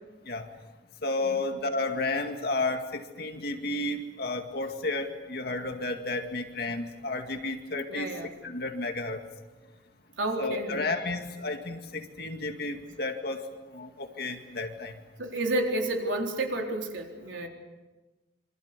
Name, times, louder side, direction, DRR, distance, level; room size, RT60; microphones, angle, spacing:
voice 1, 1.0-9.2 10.4-13.4 13.7-14.9, left 2 dB, 55° left, 5 dB, 2.1 m, -32 dB
voice 2, 7.9-8.3 10.2-10.9 15.2-17.5, right 1 dB, 80° right, 1 dB, 4.0 m, -31 dB
27.0 x 25.5 x 6.9 m, 1.2 s
head